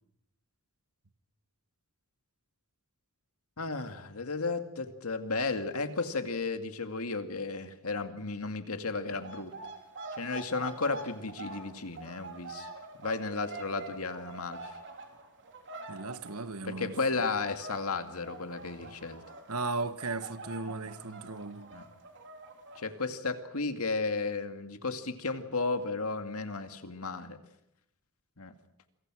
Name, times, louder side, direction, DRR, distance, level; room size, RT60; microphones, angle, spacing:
voice 1, 3.6-9.5 10.2-12.7 13.0-14.7 16.6-19.2 21.7-21.8 22.8-27.4 28.4-28.5, left 3 dB, 75° left, 2.2 m, -34 dB
sound 1, 9.2-17.1 17.3-22.8, right 2 dB, 55° right, 3.7 m, -45 dB
voice 2, 15.9-16.9 19.5-21.7, right 3 dB, 75° right, 1.5 m, -36 dB
28.5 x 23.5 x 6.3 m
head